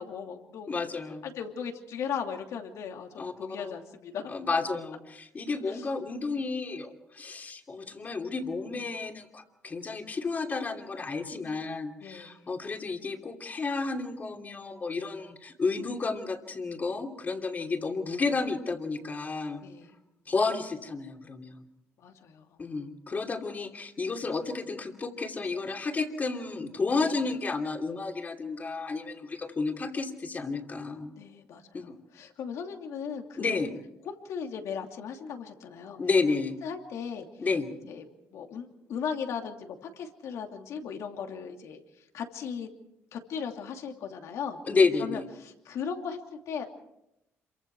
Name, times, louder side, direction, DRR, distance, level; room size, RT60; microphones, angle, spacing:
voice 1, 0.0-0.7 1.2-4.3 5.7-5.8 12.0-12.4 19.6-19.9 22.0-22.6 27.0-27.1 31.2-31.6 32.1-33.6 34.1-36.0 36.6-37.3 37.8-38.0 38.3-41.8 42.1-42.7 43.1-44.6 45.0-46.7, left 7 dB, 70° left, 4 dB, 2.7 m, -37 dB
voice 2, 0.7-1.2 3.2-3.7 4.3-19.6 20.3-21.6 22.6-31.1 31.7-31.9 33.4-33.7 36.0-36.6 37.4-37.7 44.7-45.3, left 4 dB, 30° left, 4 dB, 2.9 m, -31 dB
27.0 x 24.0 x 4.7 m, 0.85 s
cardioid pair, 105°, 5 cm